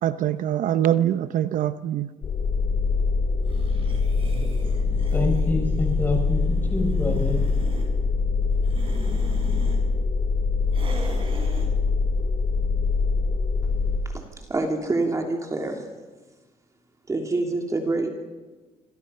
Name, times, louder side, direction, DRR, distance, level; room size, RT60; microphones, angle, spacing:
voice 1, 0.0-2.1, right 11 dB, 70° right, 12 dB, 0.8 m, -23 dB
sound 1, 2.2-14.0, left 4 dB, 45° left, 4.3 m, -24 dB
sound 2, 3.4-7.9 8.5-9.8 10.7-11.7, right 2 dB, 40° right, 6.6 m, -38 dB
voice 2, 5.1-7.4, left 2 dB, 15° left, 3 dB, 6.3 m, -26 dB
voice 3, 14.1-15.8 17.1-18.1, right 2 dB, 20° right, 2 dB, 2.9 m, -26 dB
26.5 x 26.0 x 5.6 m, 1.3 s
cardioid pair, 135°, 14 cm